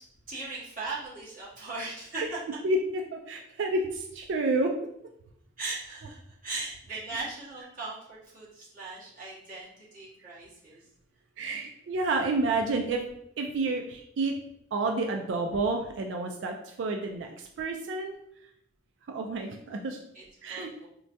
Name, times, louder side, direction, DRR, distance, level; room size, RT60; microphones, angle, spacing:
voice 1, 0.3-2.2 5.6-10.8 20.1-20.2 20.5-20.9, right 3 dB, 45° right, -8 dB, 1.3 m, -39 dB
voice 2, 2.6-4.7 6.5-6.6 6.9-7.0 11.4-13.0 13.4-14.3 14.7-18.1 19.1-20.0 20.4-20.7, right 2 dB, 65° right, 3 dB, 0.3 m, -30 dB
4.4 x 2.2 x 2.6 m, 0.74 s
head